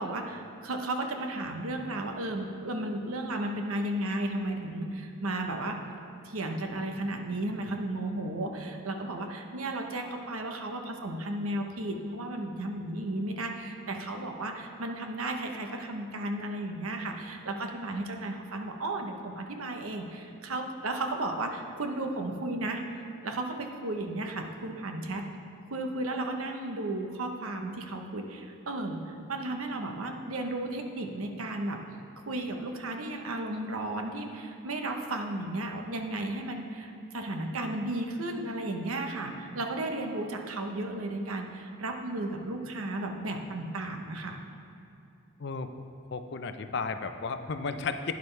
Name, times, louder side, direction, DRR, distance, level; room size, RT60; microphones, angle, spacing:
voice 1, 0.0-5.8 6.2-22.8 23.2-25.2 25.7-31.8 32.3-44.4, right 2 dB, 85° right, 4 dB, 0.9 m, -34 dB
voice 2, 45.4-45.7 46.1-48.1, left 4 dB, 55° left, 8 dB, 0.5 m, -33 dB
11.5 x 9.4 x 3.3 m, 2.6 s
head